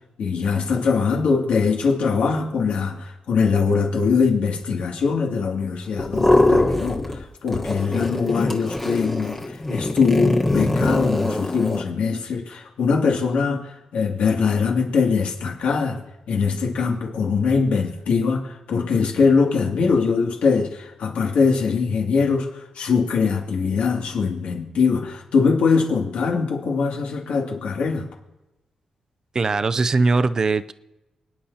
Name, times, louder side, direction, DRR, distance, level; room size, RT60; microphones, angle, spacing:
voice 1, 0.2-7.0 7.4-9.4 9.7-13.6 13.9-22.5 22.8-28.1, left 5 dB, 85° left, 0 dB, 2.5 m, -22 dB
sound 1, 6.0-7.2 7.5-11.8, left 2 dB, 15° left, 1.2 m, -22 dB
voice 2, 29.3-30.7, right 3 dB, 30° right, 14 dB, 0.4 m, -20 dB
29.5 x 10.0 x 2.8 m, 0.98 s
wide cardioid pair, 180°, 2 cm